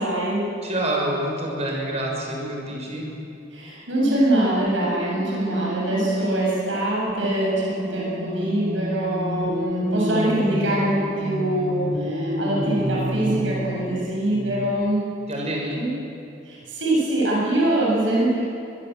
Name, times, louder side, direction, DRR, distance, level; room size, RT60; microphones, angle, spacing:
voice 1, 0.0-0.5 3.5-15.0 15.8-15.9 16.5-18.4, right 1 dB, 90° right, -4 dB, 7.6 m, -23 dB
voice 2, 0.6-3.1 15.3-15.8, right 1 dB, 35° right, -1 dB, 6.6 m, -27 dB
sound 1, 4.0-14.7, equal, 55° right, 3.1 m, -30 dB
23.5 x 22.5 x 8.1 m, 2.6 s
head